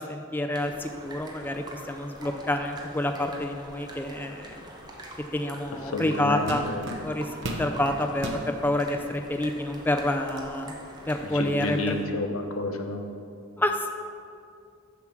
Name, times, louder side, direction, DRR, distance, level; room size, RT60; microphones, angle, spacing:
voice 1, 0.0-4.6 5.3-6.6 7.0-7.3 7.6-10.8 11.1-12.0 13.6-13.9, left 1 dB, 10° left, 4 dB, 0.4 m, -28 dB
sound 1, 0.5-12.1, right 1 dB, 20° right, 1.0 m, -45 dB
sound 2, 5.8-5.9 6.5-7.7 8.1-8.5 9.2-9.3 9.7-10.5, right 1 dB, 60° right, 0.9 m, -35 dB
voice 2, 5.9-6.8 11.2-13.0, left 2 dB, 85° left, 5 dB, 0.9 m, -30 dB
7.1 x 6.3 x 5.9 m, 2.4 s
head